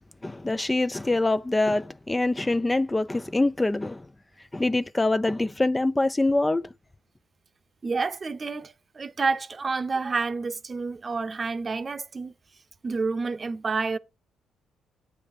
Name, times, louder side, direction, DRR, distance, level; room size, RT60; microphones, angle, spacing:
voice 1, 0.2-4.1 4.4-6.7, left 2 dB, 15° left, 0.3 m, -25 dB
voice 2, 7.8-12.3 12.8-14.0, right 4 dB, 35° right, 0.7 m, -29 dB
8.5 x 3.5 x 6.5 m
cardioid pair, 90°, 0 cm